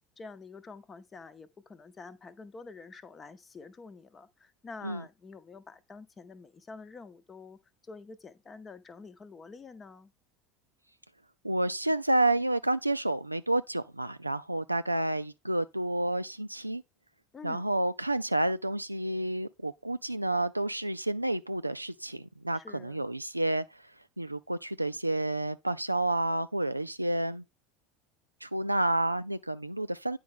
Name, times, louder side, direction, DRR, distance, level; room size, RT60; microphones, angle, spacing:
voice 1, 0.2-10.1 17.3-17.7 22.5-23.0, left 4 dB, 25° left, 0.8 m, -48 dB
voice 2, 11.4-16.8 17.4-23.6 24.2-27.4 28.4-30.2, right 1 dB, 90° right, 0.3 m, -30 dB
9.4 x 4.7 x 3.7 m
figure-of-eight pair, 75°, 0 cm